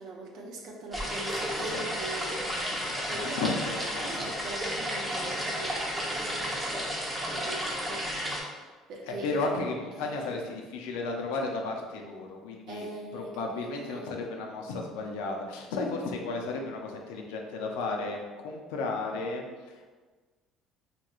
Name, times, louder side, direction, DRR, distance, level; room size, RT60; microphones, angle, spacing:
voice 1, 0.0-2.4 3.1-3.6 4.0-6.9 7.3-8.1 8.9-9.4 9.9-10.4 12.7-14.1, right 2 dB, 70° right, -1 dB, 0.4 m, -41 dB
sound 1, 0.9-8.4, equal, 15° right, 0.8 m, -32 dB
voice 2, 2.5-3.5 3.9-4.5 8.5-8.6 9.1-12.9 13.1-19.9, left 3 dB, 90° left, 2 dB, 0.4 m, -34 dB
3.0 x 2.8 x 2.3 m, 1.3 s
supercardioid pair, 95°, 0 cm